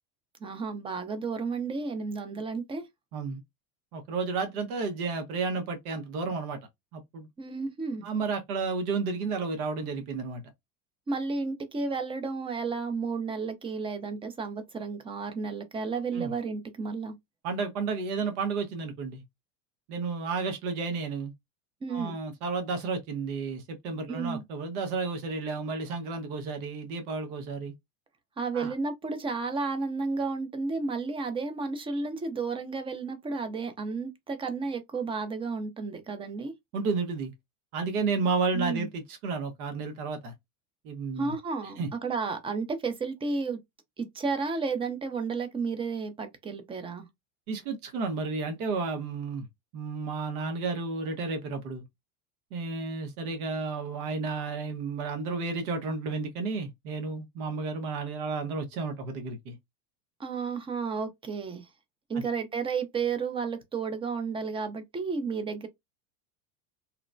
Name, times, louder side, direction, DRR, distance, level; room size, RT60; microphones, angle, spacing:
voice 1, 0.4-2.9 7.4-8.1 11.1-17.2 21.8-22.2 24.1-24.4 28.4-36.5 38.5-38.9 41.2-43.6 44.0-47.1 60.2-61.7 62.1-65.7, right 4 dB, 15° right, 0.4 m, -32 dB
voice 2, 3.9-6.6 6.9-7.3 8.0-10.4 16.1-16.3 17.4-19.2 19.9-21.3 21.9-27.7 28.5-28.7 36.7-37.3 37.7-40.3 40.8-41.3 41.8-41.9 47.5-49.4 49.7-51.8 52.5-59.6 62.1-62.3, right 4 dB, 80° right, 1.0 m, -32 dB
3.0 x 2.1 x 2.5 m
supercardioid pair, 120°, 44 cm